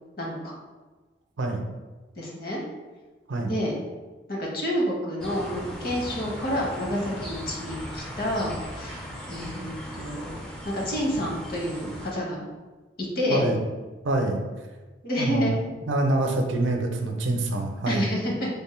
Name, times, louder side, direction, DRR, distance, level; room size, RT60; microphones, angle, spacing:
voice 1, 0.2-0.5 2.2-2.6 3.4-3.8 4.3-10.4 10.6-12.4 13.0-13.5 15.0-15.5 17.9-18.5, equal, 50° left, -2 dB, 0.9 m, -29 dB
sound 1, 5.2-12.1, equal, 5° left, 0.3 m, -38 dB
voice 2, 14.0-14.4 15.2-15.5 15.9-18.0, right 2 dB, 75° right, 3 dB, 0.5 m, -25 dB
3.4 x 2.1 x 4.3 m, 1.3 s
head